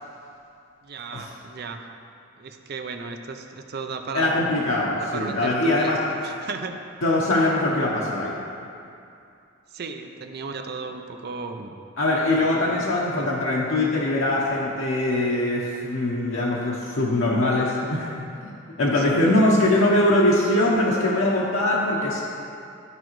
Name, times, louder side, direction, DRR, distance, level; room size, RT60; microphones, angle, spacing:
voice 1, 0.8-1.9 2.4-4.4 5.1-6.7 9.7-11.8 12.4-12.9 13.1-13.3 18.9-19.3, right 4 dB, 50° right, 5 dB, 0.5 m, -35 dB
voice 2, 4.1-6.0 7.0-8.4 12.0-18.5 18.8-22.2, left 1 dB, 90° left, -5 dB, 0.9 m, -22 dB
12.5 x 4.9 x 3.1 m, 2.6 s
head